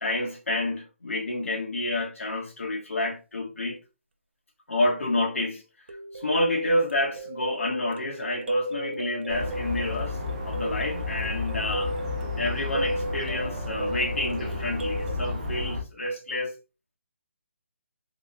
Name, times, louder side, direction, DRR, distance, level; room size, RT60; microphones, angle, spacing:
voice 1, 0.0-3.8 4.7-5.6 6.1-10.2 10.4-11.9 12.4-16.5, left 1 dB, 90° left, 1.6 m, -29 dB
sound 1, 5.9-15.2, right 1 dB, 55° right, 0.5 m, -34 dB
sound 2, 9.3-15.8, left 3 dB, 30° right, 1.0 m, -32 dB
3.6 x 3.2 x 2.6 m
hypercardioid pair, 180°, 7 cm